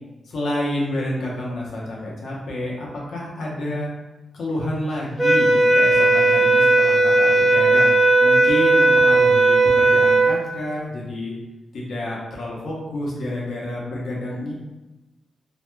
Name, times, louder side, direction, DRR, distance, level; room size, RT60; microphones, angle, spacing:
voice 1, 0.3-3.9 4.3-7.9 8.2-11.3 11.7-14.5, left 1 dB, 75° left, -4 dB, 0.8 m, -29 dB
sound 1, 5.2-10.4, right 2 dB, ahead, 0.6 m, -16 dB
2.8 x 2.2 x 3.2 m, 1.1 s
cardioid pair, 85°, 0 cm